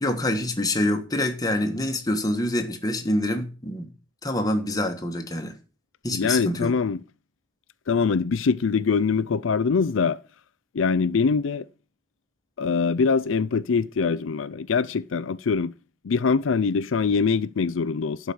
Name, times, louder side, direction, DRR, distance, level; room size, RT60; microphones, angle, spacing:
voice 1, 0.0-3.9 4.2-5.6 6.0-6.7, left 1 dB, 20° left, 1.4 m, -26 dB
voice 2, 6.1-7.0 7.9-10.2 10.7-11.6 12.6-15.7 16.0-18.3, left 5 dB, 90° left, 0.5 m, -23 dB
11.5 x 4.9 x 7.1 m
head